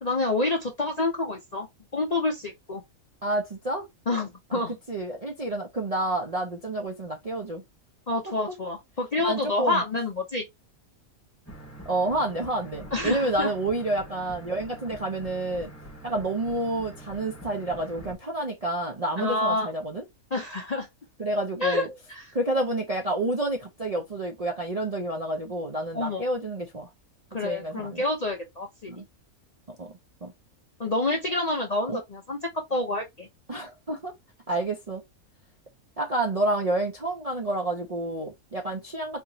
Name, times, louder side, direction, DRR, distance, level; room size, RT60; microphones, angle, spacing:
voice 1, 0.0-1.7 1.9-2.8 4.1-4.7 8.1-10.4 12.9-13.5 19.2-19.7 20.3-20.9 21.6-22.3 25.9-26.2 27.3-28.9 30.8-32.4 32.7-33.3, left 2 dB, 45° left, 0.5 m, -28 dB
voice 2, 3.2-3.9 4.5-4.6 4.9-7.6 8.3-8.6 9.2-9.8 11.9-15.7 16.0-20.0 21.2-21.9 22.3-26.9 27.4-28.0 28.9-29.0 29.7-29.9 30.2-30.3 31.9-32.0 33.5-34.1 34.5-35.0 36.0-39.2, right 2 dB, 40° right, 0.5 m, -29 dB
sound 1, 11.5-18.1, right 1 dB, 10° left, 1.1 m, -44 dB
4.2 x 2.9 x 2.7 m
omnidirectional pair, 1.5 m